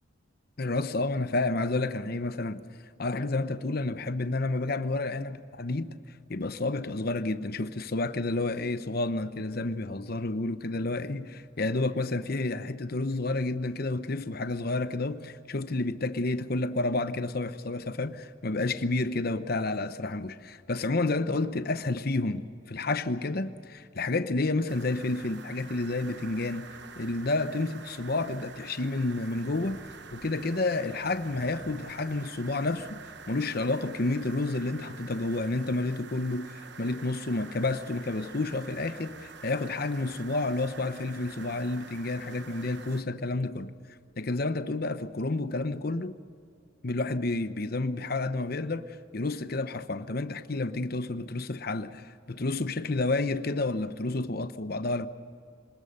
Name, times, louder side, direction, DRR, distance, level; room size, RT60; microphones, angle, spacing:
voice 1, 0.6-2.6 3.0-5.9 6.3-26.7 27.0-29.8 30.1-33.0 33.3-43.7 44.2-46.1 46.8-55.1, left 2 dB, 50° left, 0.9 m, -30 dB
sound 1, 24.7-43.0, right 5 dB, 60° right, 1.1 m, -47 dB
27.0 x 19.5 x 6.7 m
head